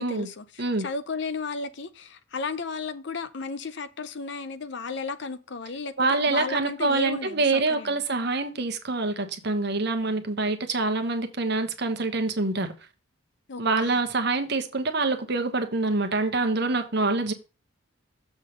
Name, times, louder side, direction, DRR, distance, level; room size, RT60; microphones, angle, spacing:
voice 1, 0.0-8.0 13.5-14.0, left 4 dB, 55° left, 0.6 m, -34 dB
voice 2, 6.0-12.7 13.6-17.3, right 3 dB, 50° right, 1.1 m, -26 dB
7.3 x 3.8 x 6.5 m
head